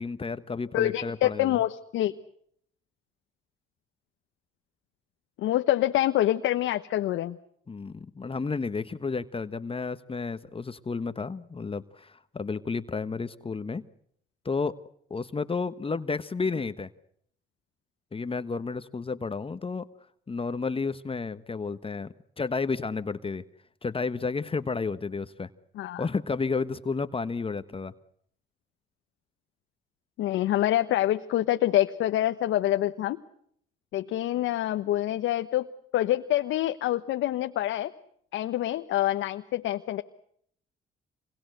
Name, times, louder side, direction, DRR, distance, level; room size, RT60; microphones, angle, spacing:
voice 1, 0.0-1.6 7.7-13.9 14.4-14.7 15.1-16.9 18.1-19.9 20.3-23.4 23.8-25.5 26.0-27.9, left 4 dB, 25° left, 12 dB, 1.2 m, -31 dB
voice 2, 0.7-2.1 5.4-7.4 25.8-26.0 30.2-33.2 33.9-35.7 35.9-37.9 38.3-40.0, left 13 dB, 75° left, 7 dB, 1.0 m, -26 dB
27.0 x 21.5 x 8.0 m, 0.68 s
supercardioid pair, 70°, 20 cm